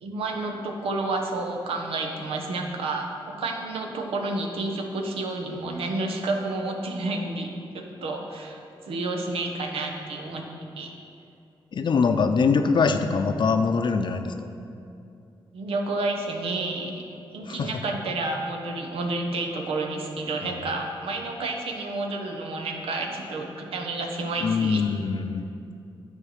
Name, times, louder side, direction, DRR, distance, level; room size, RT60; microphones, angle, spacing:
voice 1, 0.0-8.6 8.9-10.5 10.8-10.9 15.5-17.0 17.3-24.8, right 2 dB, 90° right, 2 dB, 1.0 m, -30 dB
voice 2, 11.7-14.5 17.5-17.7 20.4-20.6 24.4-25.5, left 5 dB, 55° left, 7 dB, 0.6 m, -23 dB
9.8 x 4.6 x 6.5 m, 2.6 s
cardioid pair, 75°, 9 cm